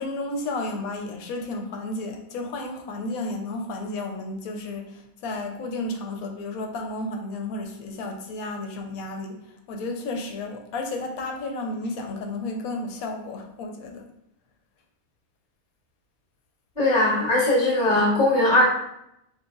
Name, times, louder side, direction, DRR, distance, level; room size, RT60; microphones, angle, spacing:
voice 1, 0.0-4.9 5.2-9.4 9.7-14.0, left 2 dB, 90° left, 3 dB, 1.1 m, -32 dB
voice 2, 16.8-18.6, left 1 dB, 35° left, -3 dB, 1.1 m, -20 dB
3.9 x 3.3 x 2.3 m, 0.79 s
omnidirectional pair, 1.5 m